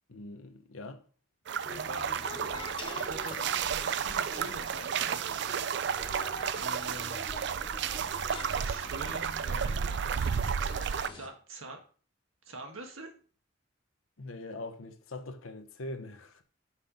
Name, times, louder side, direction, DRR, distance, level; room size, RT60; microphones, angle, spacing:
voice 1, 0.1-1.0 14.2-16.4, left 2 dB, 85° left, 0.9 m, -42 dB
sound 1, 1.5-11.1, right 7 dB, 55° right, 0.4 m, -32 dB
sound 2, 1.6-11.3, left 2 dB, 25° left, 1.2 m, -45 dB
voice 2, 1.7-2.6 3.0-3.3 3.7-6.0 6.5-7.2 8.5-10.0 11.1-11.8 12.5-13.1, right 2 dB, 85° right, 1.7 m, -45 dB
5.9 x 5.9 x 5.1 m
head